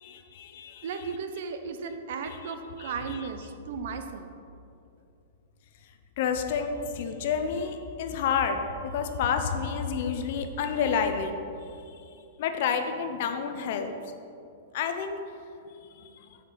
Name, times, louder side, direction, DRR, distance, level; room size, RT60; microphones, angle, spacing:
voice 1, 0.0-0.9 2.3-3.3 6.2-12.0 12.4-13.9 14.7-15.2 15.9-16.4, left 6 dB, 50° left, 7 dB, 0.5 m, -30 dB
voice 2, 0.8-4.3, right 5 dB, 60° right, 7 dB, 0.5 m, -35 dB
7.1 x 4.7 x 3.9 m, 2.6 s
supercardioid pair, 165°, 0 cm